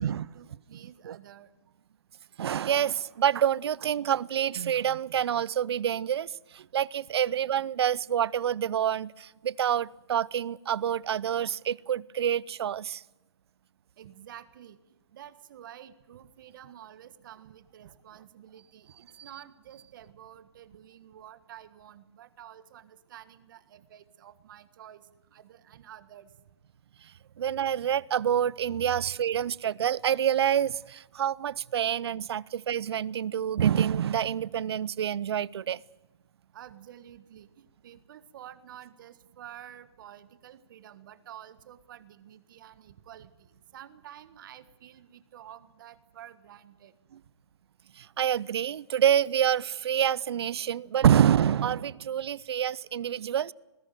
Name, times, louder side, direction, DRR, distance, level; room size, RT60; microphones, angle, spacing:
voice 1, 0.0-1.5 14.0-26.3 36.5-46.9, right 11 dB, 45° right, 1.5 m, -50 dB
voice 2, 0.7-1.2 2.4-13.0 27.4-35.8 48.0-53.5, right 9 dB, 65° right, 0.6 m, -27 dB
20.0 x 16.0 x 9.2 m
hypercardioid pair, 155°, 15 cm